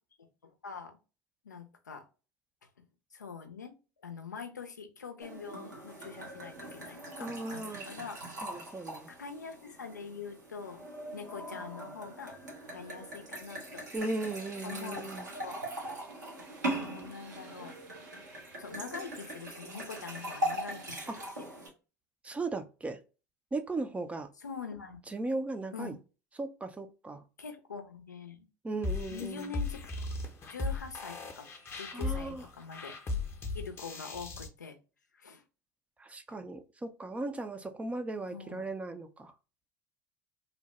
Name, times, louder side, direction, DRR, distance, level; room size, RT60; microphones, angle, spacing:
voice 1, 0.4-1.0 1.4-2.0 3.1-3.7 4.0-8.2 9.1-10.9 11.1-12.4 12.7-13.8 14.6-15.6 16.7-17.8 18.6-21.3 24.4-25.1 25.7-26.0 27.4-28.5 29.1-29.9 30.5-31.5 31.8-32.9 33.5-34.8 35.1-35.4 38.3-38.7, left 5 dB, 90° left, 6 dB, 0.5 m, -44 dB
sound 1, 5.2-21.7, right 1 dB, 85° right, 1.0 m, -41 dB
voice 2, 7.2-7.9 8.4-9.1 13.9-15.2 21.1-21.2 22.2-23.0 23.5-24.3 25.1-26.0 26.4-27.2 28.6-29.5 31.9-32.4 36.0-39.3, right 2 dB, 15° right, 8 dB, 0.4 m, -37 dB
sound 2, 14.0-21.3, right 3 dB, 55° right, 1.1 m, -57 dB
sound 3, 28.8-34.5, left 3 dB, 25° left, 0.6 m, -37 dB
2.8 x 2.1 x 3.0 m, 0.33 s
hypercardioid pair, 75°, 9 cm